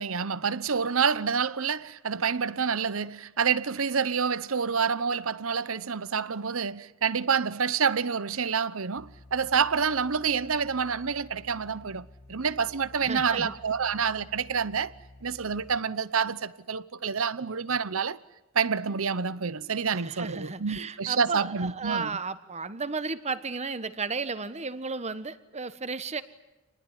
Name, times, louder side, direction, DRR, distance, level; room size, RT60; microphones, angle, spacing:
voice 1, 0.0-14.9 15.2-18.2 18.5-22.1, right 6 dB, 70° right, 0.9 m, -28 dB
sound 1, 9.0-15.8, left 2 dB, 50° left, 1.3 m, -52 dB
voice 2, 13.0-13.5 19.9-26.2, right 4 dB, 30° right, 1.3 m, -34 dB
27.5 x 20.0 x 10.0 m
head